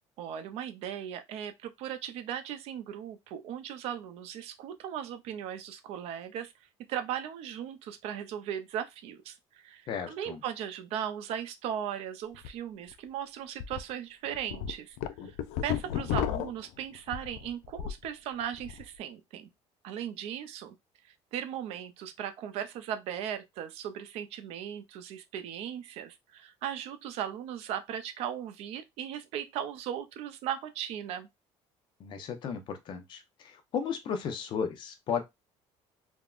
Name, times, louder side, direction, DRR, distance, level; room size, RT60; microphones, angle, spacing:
voice 1, 0.2-6.5 6.9-15.0 15.2-15.4 15.6-19.5 19.8-20.7 21.0-31.3, right 9 dB, 60° right, 0.5 m, -37 dB
voice 2, 9.9-10.4 15.2-15.3 32.0-35.2, left 7 dB, 40° left, 0.6 m, -35 dB
sound 1, 12.3-12.5 12.9-13.0 13.6-13.8 14.3-18.1 18.4-18.9, left 10 dB, 85° left, 0.4 m, -33 dB
3.4 x 2.1 x 2.4 m
cardioid pair, 160°, 12 cm